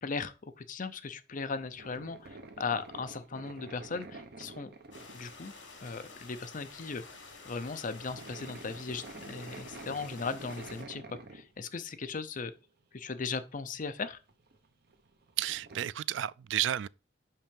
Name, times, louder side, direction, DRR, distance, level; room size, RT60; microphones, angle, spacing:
voice 1, 0.0-4.7 5.1-5.5 5.8-7.0 7.5-12.5 12.9-14.2, left 4 dB, 45° left, 0.6 m, -37 dB
sound 1, 1.4-6.2 6.5-6.7 7.0-12.1 12.6-12.7 13.7-15.9, right 3 dB, 55° right, 1.0 m, -49 dB
sound 2, 4.9-10.8, left 3 dB, 80° left, 2.7 m, -50 dB
voice 2, 15.4-16.9, right 12 dB, 75° right, 0.3 m, -32 dB
5.7 x 5.6 x 5.2 m
head